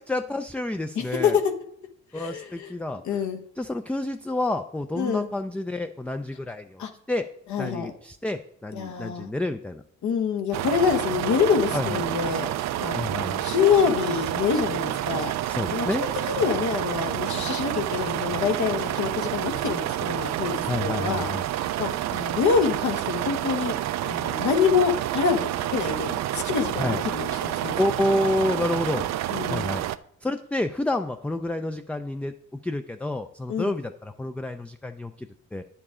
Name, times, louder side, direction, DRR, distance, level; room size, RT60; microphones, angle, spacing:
voice 1, 0.0-1.4 2.1-3.0 3.6-6.8 7.1-7.3 7.6-9.8 11.7-12.0 12.9-13.4 15.5-16.0 20.7-21.4 26.8-27.0 27.8-29.1 29.5-29.8 30.2-35.6, left 1 dB, 5° left, 8 dB, 0.3 m, -29 dB
voice 2, 0.9-1.4 2.1-2.7 3.0-3.4 5.0-5.3 6.8-6.9 7.5-7.9 8.7-9.3 10.0-12.5 12.8-15.3 15.7-23.8 24.0-27.8 29.3-29.7 33.5-33.8, left 6 dB, 70° left, 7 dB, 1.2 m, -26 dB
sound 1, 10.5-30.0, right 13 dB, 60° right, 0.4 m, -29 dB
9.7 x 7.0 x 3.7 m, 0.68 s
cardioid pair, 90°, 30 cm